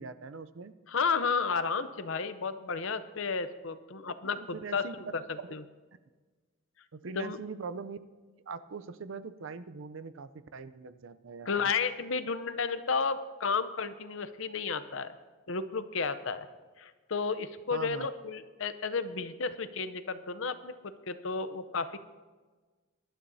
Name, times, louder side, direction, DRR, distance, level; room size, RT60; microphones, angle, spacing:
voice 1, 0.0-0.7 4.4-5.5 6.9-8.0 8.5-11.6 17.7-18.1, right 4 dB, 60° right, 14 dB, 0.5 m, -42 dB
voice 2, 0.9-4.9 5.1-5.2 5.5-5.6 7.2-7.4 11.5-15.1 15.5-16.5 16.8-22.0, left 5 dB, 65° left, 12 dB, 0.7 m, -32 dB
23.5 x 12.5 x 2.7 m, 1.3 s
head